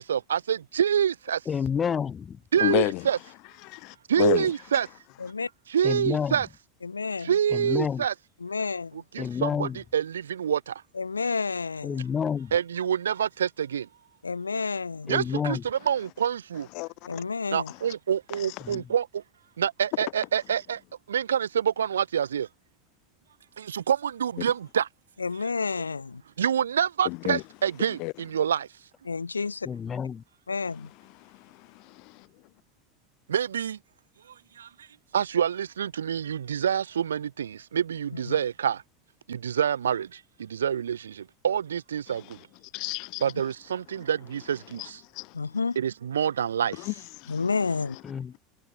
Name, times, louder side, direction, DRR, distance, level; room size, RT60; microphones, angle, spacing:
voice 1, 0.0-1.4 2.5-3.2 4.1-4.9 5.7-6.5 7.2-8.1 9.1-9.7 9.9-10.7 12.5-13.8 15.1-15.6 15.9-16.7 17.5-19.1 19.6-20.8 21.1-22.5 23.6-24.9 26.4-28.7 33.3-33.8 35.1-38.8 39.3-40.1 40.5-41.1 41.4-42.2 43.2-44.8 45.8-46.8, right 8 dB, 80° right, 0.9 m, -26 dB
voice 2, 1.4-2.4 5.8-6.5 7.5-8.1 9.2-9.8 11.8-12.6 15.1-15.7 18.6-18.9 29.6-30.2 48.0-48.3, left 7 dB, 30° left, 2.9 m, -29 dB
voice 3, 2.6-3.1 3.6-4.5 16.7-17.2 17.7-17.8 18.3-18.8 24.4-24.5 27.0-27.4 27.9-28.1 30.8-32.5 42.1-43.2 43.9-44.1 44.6-45.6 46.7-48.0, left 28 dB, 55° left, 1.8 m, -33 dB
voice 4, 6.8-7.3 8.4-9.0 10.9-11.9 14.2-15.1 17.1-17.7 25.2-26.2 29.0-29.7 30.5-30.9 38.1-38.4 45.3-45.8 47.3-48.0, left 4 dB, 90° left, 1.1 m, -30 dB
figure-of-eight pair, 80°, 0 cm